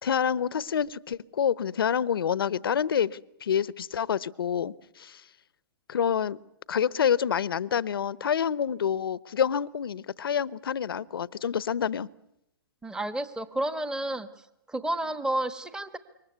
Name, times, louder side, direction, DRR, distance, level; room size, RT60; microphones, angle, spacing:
voice 1, 0.0-5.2 5.9-6.4 6.7-12.1, left 8 dB, 75° left, 20 dB, 1.0 m, -27 dB
voice 2, 12.8-14.3 14.7-16.0, right 1 dB, 5° right, 13 dB, 1.4 m, -30 dB
27.5 x 24.0 x 8.2 m, 0.84 s
hypercardioid pair, 125°, 12 cm